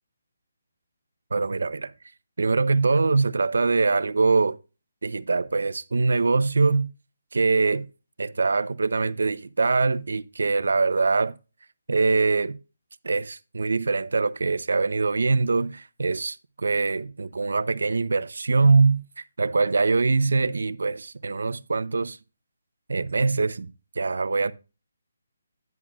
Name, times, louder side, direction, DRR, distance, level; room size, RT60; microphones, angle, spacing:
voice 1, 1.3-1.9 2.4-4.6 5.0-6.9 7.3-7.9 8.2-11.3 11.9-12.6 13.0-22.2 22.9-23.7 24.0-24.5, right 4 dB, 85° right, 0.6 m, -23 dB
10.5 x 9.3 x 2.4 m
hypercardioid pair, 165°, 0 cm